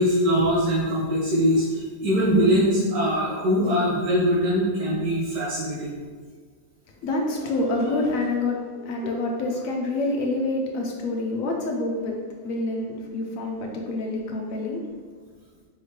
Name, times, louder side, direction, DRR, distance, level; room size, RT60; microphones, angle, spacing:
voice 1, 0.0-6.0, equal, 65° right, -8 dB, 1.5 m, -22 dB
voice 2, 7.0-12.2 12.4-14.8, left 2 dB, 75° left, 0 dB, 0.7 m, -27 dB
4.3 x 3.5 x 3.1 m, 1.5 s
omnidirectional pair, 2.0 m